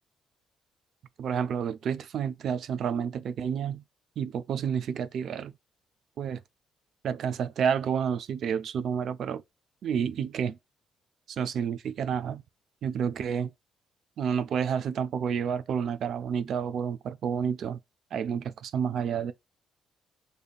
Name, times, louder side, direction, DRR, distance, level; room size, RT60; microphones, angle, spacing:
voice 1, 1.2-3.8 4.2-5.5 6.2-6.4 7.0-9.4 9.8-10.6 11.3-12.4 12.8-13.5 14.2-17.8 18.1-19.3, right 7 dB, 65° right, 0.3 m, -30 dB
5.0 x 2.7 x 2.3 m
cardioid pair, 90°, 0 cm